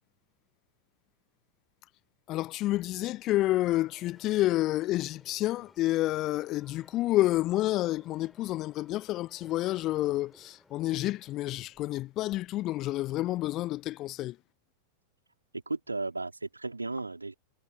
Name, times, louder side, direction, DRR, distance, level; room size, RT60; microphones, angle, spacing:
voice 1, 2.3-14.4, left 16 dB, 35° left, 0.9 m, -29 dB
sound 1, 3.7-12.4, left 2 dB, 5° left, 7.1 m, -61 dB
voice 2, 15.5-17.3, right 3 dB, 80° right, 3.8 m, -35 dB
figure-of-eight pair, 90°, 0 cm